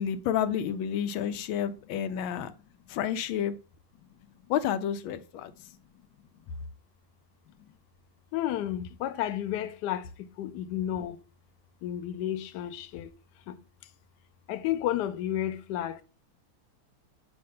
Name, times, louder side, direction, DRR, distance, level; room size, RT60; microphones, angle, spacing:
voice 1, 0.0-2.5 2.9-3.5 4.5-5.5, left 9 dB, 85° left, 1.4 m, -30 dB
voice 2, 8.3-10.0 10.4-11.2 11.8-13.1 13.5-13.6 14.5-16.0, left 12 dB, 70° left, 1.1 m, -31 dB
7.6 x 2.6 x 5.2 m
omnidirectional pair, 2.1 m